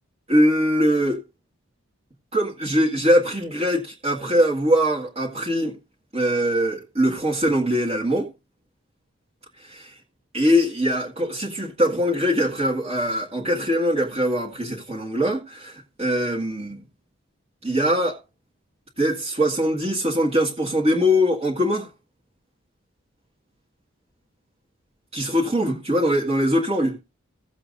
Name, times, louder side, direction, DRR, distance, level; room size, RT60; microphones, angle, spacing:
voice 1, 0.3-1.2 2.3-5.8 6.1-8.3 9.6-9.9 10.3-16.8 17.6-18.2 19.0-21.9 25.1-27.0, equal, 30° right, 1.8 m, -22 dB
16.5 x 7.4 x 2.6 m
head